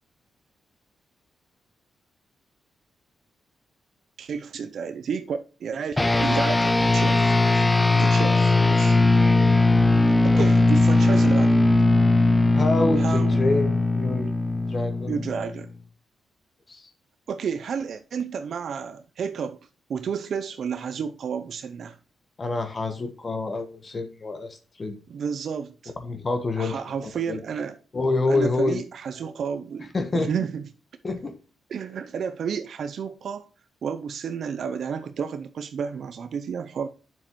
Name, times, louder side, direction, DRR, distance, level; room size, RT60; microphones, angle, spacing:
voice 1, 4.2-7.6 8.0-9.0 10.2-11.6 13.0-13.4 15.1-15.7 17.3-19.6 19.9-22.0 25.1-25.9 26.6-27.8 28.3-30.6 31.7-33.5 33.8-36.9, right 6 dB, 70° right, 0.6 m, -31 dB
sound 1, 6.0-15.7, left 2 dB, 15° left, 0.7 m, -19 dB
voice 2, 12.5-14.3 14.7-15.2 16.7-16.9 22.4-25.0 26.0-26.8 27.3-27.4 27.9-28.8 29.9-30.3 31.0-31.4, left 3 dB, 40° left, 1.2 m, -27 dB
7.4 x 7.4 x 3.1 m
cardioid pair, 80°, 0 cm